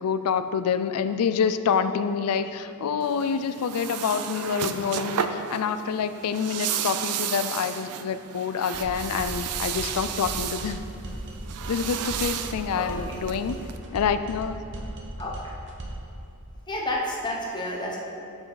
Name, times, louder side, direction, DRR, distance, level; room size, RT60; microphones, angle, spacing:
voice 1, 0.0-10.8 11.7-13.6 13.9-14.6, left 6 dB, 80° left, 11 dB, 0.4 m, -27 dB
sound 1, 3.0-13.8, right 8 dB, 80° right, 0.5 m, -33 dB
sound 2, 8.7-16.1, right 1 dB, 55° right, 1.0 m, -37 dB
voice 2, 12.6-13.0 15.2-15.6 16.7-18.0, left 1 dB, 20° left, -3 dB, 1.1 m, -31 dB
7.6 x 6.8 x 3.9 m, 2.7 s
head